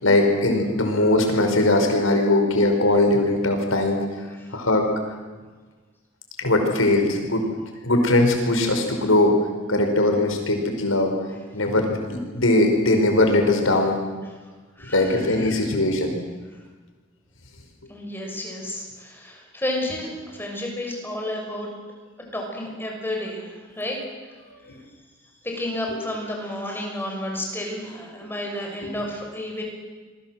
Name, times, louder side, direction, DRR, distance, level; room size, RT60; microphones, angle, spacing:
voice 1, 0.0-4.0 4.5-4.9 6.4-7.4 7.8-9.4 9.7-11.1 11.5-14.0 14.8-16.1, left 2 dB, 90° left, 4 dB, 5.3 m, -20 dB
voice 2, 14.8-15.6 17.9-21.7 22.3-24.0 24.7-24.8 25.4-29.6, left 1 dB, 10° left, 0 dB, 6.6 m, -31 dB
27.5 x 22.0 x 7.8 m, 1.3 s
head